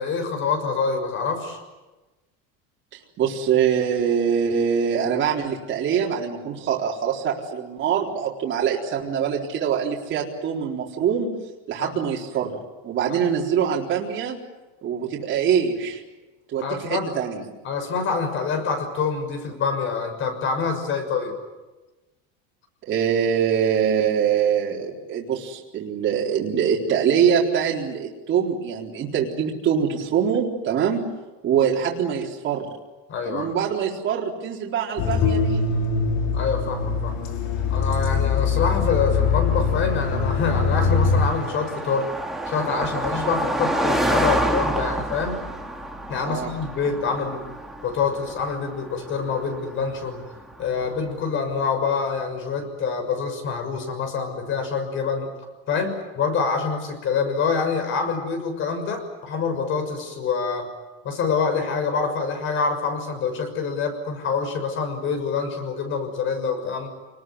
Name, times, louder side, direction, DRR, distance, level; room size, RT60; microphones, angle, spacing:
voice 1, 0.0-1.6 11.8-11.9 16.6-17.1 17.6-21.3 33.1-33.5 36.3-37.2 37.7-42.1 42.5-45.4 46.1-47.4 47.8-50.2 50.6-55.3 55.7-60.7 61.0-66.9, left 5 dB, 40° left, 6 dB, 6.5 m, -26 dB
voice 2, 3.2-11.3 11.7-14.4 14.8-16.0 16.5-17.4 22.9-31.0 31.4-32.7 33.3-35.7 46.2-46.5, right 8 dB, 40° right, -2 dB, 4.1 m, -24 dB
sound 1, 35.0-41.3, left 5 dB, 55° left, 3.1 m, -22 dB
Car passing by, 37.5-51.2, right 1 dB, ahead, 2.4 m, -30 dB
28.0 x 20.5 x 9.6 m, 1.1 s
cardioid pair, 145°, 31 cm